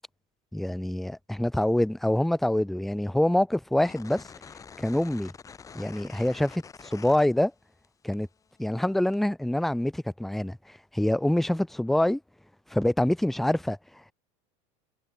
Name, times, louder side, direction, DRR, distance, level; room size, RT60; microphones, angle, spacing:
voice 1, 0.5-4.2 4.8-5.3 5.7-7.5 8.0-8.3 8.6-10.6 10.9-12.2 12.7-13.8, left 1 dB, ahead, 0.6 m, -25 dB
sound 1, 3.8-7.9 8.1-9.2, left 6 dB, 20° left, 2.8 m, -47 dB
supercardioid pair, 140°, 17 cm